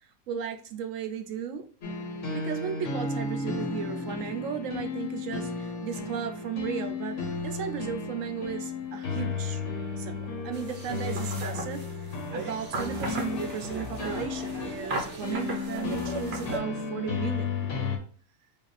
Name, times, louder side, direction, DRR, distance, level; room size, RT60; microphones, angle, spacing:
voice 1, 0.3-1.6 2.3-9.6 10.0-17.5 17.8-18.0, right 8 dB, 75° right, 7 dB, 1.0 m, -35 dB
sound 1, 1.8-18.0, left 4 dB, 65° left, 1.3 m, -34 dB
sound 2, 10.5-16.6, right 3 dB, 50° right, 1.2 m, -37 dB
4.8 x 2.5 x 3.2 m, 0.43 s
omnidirectional pair, 1.4 m